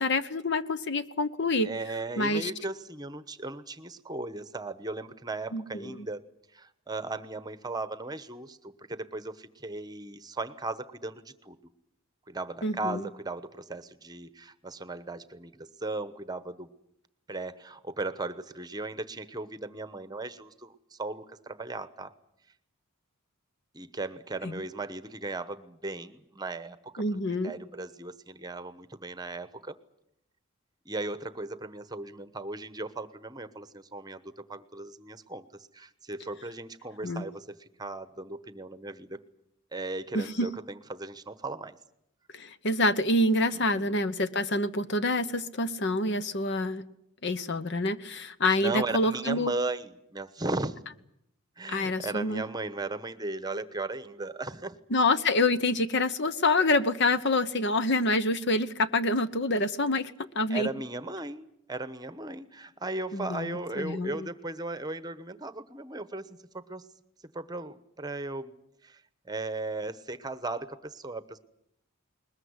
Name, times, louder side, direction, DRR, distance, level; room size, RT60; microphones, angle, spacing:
voice 1, 0.0-1.7 2.2-2.5 5.5-6.1 12.6-13.0 24.4-24.5 27.0-27.5 37.0-37.3 40.1-40.5 42.3-46.8 47.2-49.5 51.7-52.4 54.9-60.7 63.1-64.3, left 2 dB, 50° left, 13 dB, 1.0 m, -27 dB
voice 2, 1.6-6.2 6.5-11.6 12.3-16.7 17.3-22.1 23.7-27.0 27.4-29.8 30.8-39.2 39.7-41.8 43.5-43.9 48.6-50.8 51.6-54.8 60.5-66.8 67.3-68.5 68.8-69.0 69.3-71.4, right 2 dB, 20° right, 13 dB, 1.0 m, -37 dB
21.0 x 21.0 x 9.7 m, 0.77 s
head